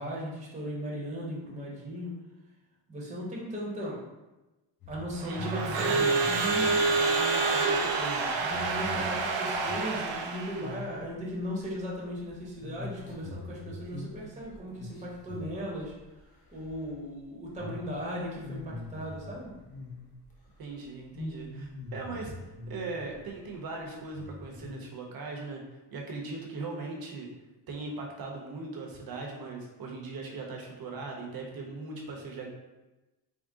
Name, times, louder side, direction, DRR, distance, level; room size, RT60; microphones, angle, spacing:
voice 1, 0.0-2.1 2.9-4.0 4.9-7.0 8.4-15.9 16.5-19.6, equal, 15° right, -4 dB, 0.9 m, -37 dB
sound 1, 4.8-10.2 10.5-11.0 11.3-16.2 16.5-17.0 17.5-17.8 18.3-20.3 20.6-20.8 21.1-23.2 23.5-23.6 24.1-24.7, left 2 dB, 50° left, 0.9 m, -43 dB
voice 2, 5.2-8.3 20.6-22.3 22.7-25.6 25.9-27.3 27.7-32.5, right 3 dB, 50° right, 0 dB, 0.9 m, -39 dB
Crowd / Alarm, 5.2-10.7, right 3 dB, 85° right, 0.6 m, -28 dB
3.6 x 2.1 x 3.8 m, 1.1 s
cardioid pair, 115°, 44 cm